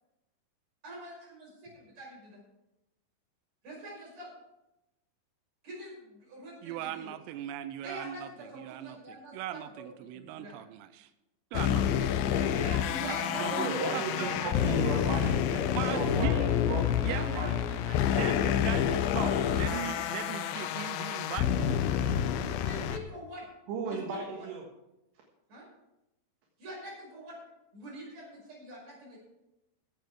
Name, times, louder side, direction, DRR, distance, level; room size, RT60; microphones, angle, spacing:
voice 1, 0.8-2.4 3.6-4.3 5.6-7.1 7.8-9.9 10.1-10.6 12.5-14.5 14.8-14.9 15.5-16.3 17.1-18.1 19.2-19.8 21.6-21.8 22.6-23.4 23.9-24.5 25.5-25.6 26.6-27.4 27.7-29.2, right 1 dB, 35° right, -3 dB, 6.5 m, -43 dB
voice 2, 6.6-8.3 8.6-11.1 11.5-12.1 13.1-13.2 13.9-14.3 15.7-16.4 17.0-17.4 18.2-19.3 19.6-21.8, right 12 dB, 85° right, 10 dB, 2.5 m, -39 dB
sound 1, 11.5-23.0, left 9 dB, 80° left, 2.9 m, -28 dB
voice 3, 13.3-15.3 15.8-17.5 23.7-24.6, right 3 dB, 65° right, -1 dB, 3.5 m, -35 dB
15.5 x 9.1 x 4.8 m, 0.92 s
omnidirectional pair, 5.6 m